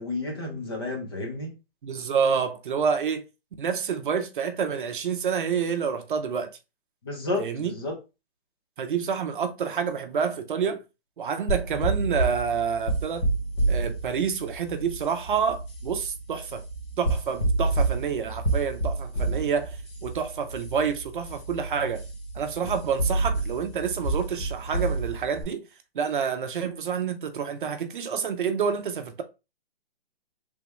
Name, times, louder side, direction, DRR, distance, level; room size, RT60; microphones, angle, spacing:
voice 1, 0.0-1.6 7.0-8.0, left 2 dB, 25° left, 0.6 m, -31 dB
voice 2, 1.8-3.2 3.6-6.5 7.4-7.7 8.8-10.8 11.2-13.3 13.7-16.6 17.0-22.0 22.3-25.6 25.9-29.2, right 6 dB, 55° right, 0.6 m, -28 dB
sound 1, 11.5-25.4, right 2 dB, 60° left, 1.5 m, -29 dB
3.4 x 3.3 x 3.0 m
hypercardioid pair, 170°, 32 cm